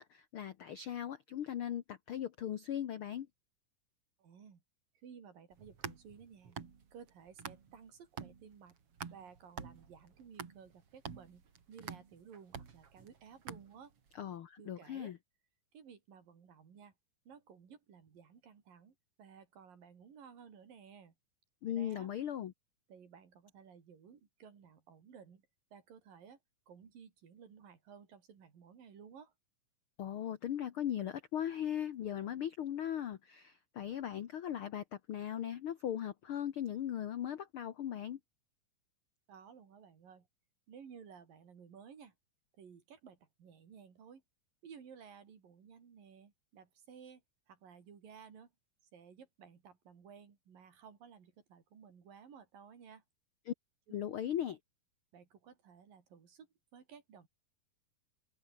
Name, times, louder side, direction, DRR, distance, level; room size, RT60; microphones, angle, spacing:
voice 1, 0.0-3.3 14.2-15.2 21.6-22.5 30.0-38.2 53.5-53.6 53.9-54.6, left 10 dB, 75° left, 1.2 m, -38 dB
voice 2, 4.2-4.6 5.0-6.6 6.9-8.8 9.1-13.9 14.6-15.1 15.7-16.9 17.3-21.1 21.7-22.1 22.9-25.5 25.7-26.4 26.7-29.3 39.3-40.3 40.7-42.2 42.6-44.2 44.6-47.2 47.5-48.5 48.9-53.0 53.9-54.0 55.1-56.5 56.7-57.3, right 7 dB, 80° right, 5.2 m, -56 dB
sound 1, 5.5-7.9 8.2-14.1, right 6 dB, 45° right, 3.4 m, -48 dB
omnidirectional pair, 3.9 m